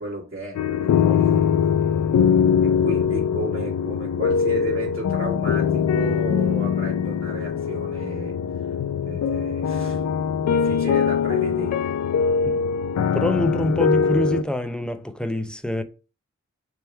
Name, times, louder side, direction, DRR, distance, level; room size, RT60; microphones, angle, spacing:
voice 1, 0.0-1.9 2.6-8.4 8.7-8.8 9.0-12.2, right 1 dB, 45° right, 1.9 m, -34 dB
sound 1, 0.6-14.4, left 7 dB, 65° left, 0.5 m, -22 dB
voice 2, 13.1-15.8, left 1 dB, 5° left, 0.6 m, -25 dB
3.4 x 3.0 x 4.3 m
cardioid pair, 45°, 30 cm